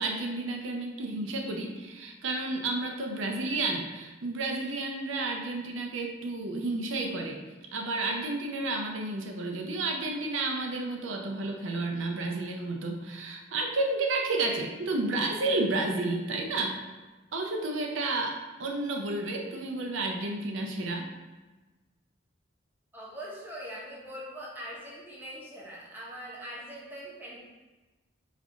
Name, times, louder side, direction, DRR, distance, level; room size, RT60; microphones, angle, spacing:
voice 1, 0.0-7.4 7.7-16.8 17.3-21.1, right 2 dB, 80° right, 2 dB, 0.5 m, -31 dB
voice 2, 22.9-27.4, equal, 10° right, -5 dB, 0.8 m, -42 dB
5.3 x 2.5 x 3.7 m, 1.2 s
head